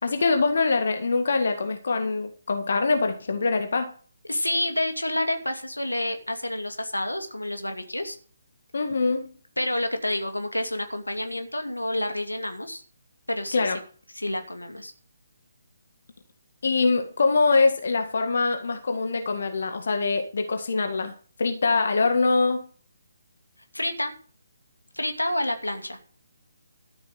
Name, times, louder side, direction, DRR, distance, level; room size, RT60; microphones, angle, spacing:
voice 1, 0.0-3.9 8.7-9.3 13.5-13.8 16.6-21.1 21.4-22.7, left 4 dB, 55° left, 6 dB, 1.8 m, -23 dB
voice 2, 4.3-8.2 9.6-12.8 13.3-13.7 14.1-14.9 23.7-24.1 24.9-26.0, left 1 dB, 85° left, 6 dB, 2.4 m, -29 dB
13.0 x 7.7 x 6.4 m, 0.42 s
figure-of-eight pair, 145°, 0 cm